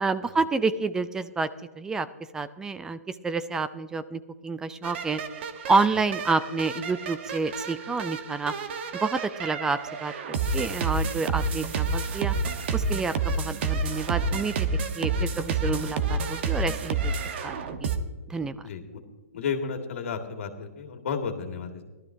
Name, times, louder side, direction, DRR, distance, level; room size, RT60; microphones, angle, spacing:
voice 1, 0.0-1.5 1.8-2.1 2.3-3.0 3.2-5.2 5.7-8.5 8.9-12.3 12.7-14.7 15.0-17.1 17.4-17.5 17.8-17.9 18.3-18.6, right 4 dB, 10° right, 14 dB, 0.3 m, -28 dB
sound 1, 4.8-18.0, right 4 dB, 50° right, 1.0 m, -29 dB
voice 2, 18.6-19.0 19.3-21.9, left 6 dB, 60° left, 4 dB, 1.9 m, -33 dB
17.5 x 12.5 x 2.6 m, 1.2 s
hypercardioid pair, 145°, 8 cm